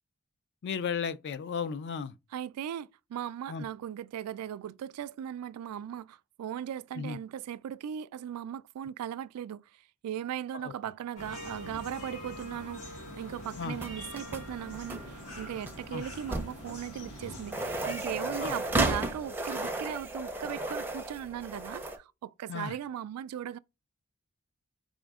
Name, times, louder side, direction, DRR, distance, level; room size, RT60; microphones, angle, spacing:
voice 1, 0.6-2.1 3.5-3.6 7.0-7.2 10.6-10.7 13.6-13.8 15.9-16.0 18.4-18.5 22.5-22.7, left 6 dB, 50° left, 0.3 m, -34 dB
voice 2, 2.3-9.6 10.0-23.6, right 10 dB, 85° right, 0.3 m, -38 dB
sound 1, 11.2-19.5, equal, 70° left, 1.9 m, -45 dB
sound 2, 13.8-22.0, right 2 dB, 10° right, 0.5 m, -34 dB
4.9 x 2.6 x 3.5 m
head